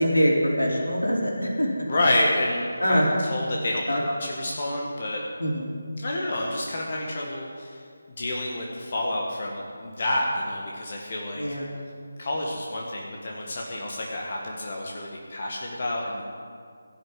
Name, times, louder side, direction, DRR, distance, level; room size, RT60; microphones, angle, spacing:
voice 1, 0.0-1.7 2.8-3.2 3.9-4.0 5.4-5.7 11.3-11.7, equal, 85° left, -3 dB, 4.1 m, -23 dB
voice 2, 1.9-3.0 3.3-5.2 6.0-7.8 8.2-11.4 12.2-16.2, left 1 dB, 45° left, -2 dB, 1.8 m, -29 dB
17.0 x 6.7 x 9.2 m, 2.2 s
figure-of-eight pair, 155°, 0 cm